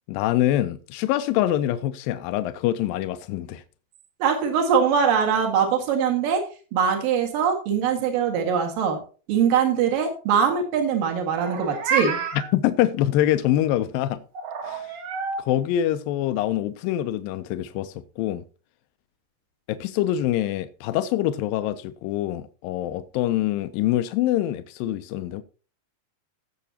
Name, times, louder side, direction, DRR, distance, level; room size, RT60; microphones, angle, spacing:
voice 1, 0.1-3.6 12.5-14.2 14.6-14.9 15.4-18.4 19.7-25.4, left 13 dB, 85° left, 2.4 m, -25 dB
voice 2, 4.2-6.4 6.7-9.0 9.3-12.2, right 7 dB, 75° right, 3.4 m, -22 dB
Meow, 11.3-12.5 14.4-15.4, right 5 dB, 60° right, 2.6 m, -28 dB
17.5 x 6.9 x 2.8 m
omnidirectional pair, 4.0 m